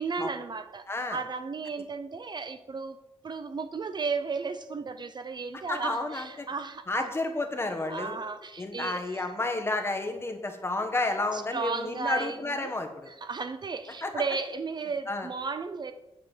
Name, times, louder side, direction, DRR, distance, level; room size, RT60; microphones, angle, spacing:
voice 1, 0.0-3.0 3.2-7.1 7.9-9.3 11.3-12.7 13.1-15.9, right 4 dB, 40° right, 10 dB, 0.5 m, -34 dB
voice 2, 0.9-1.2 5.7-6.5 6.9-8.1 8.6-13.1 14.0-14.1 15.1-15.3, left 2 dB, 20° left, 4 dB, 1.2 m, -31 dB
8.7 x 5.8 x 7.3 m, 0.94 s
wide cardioid pair, 175°, 11 cm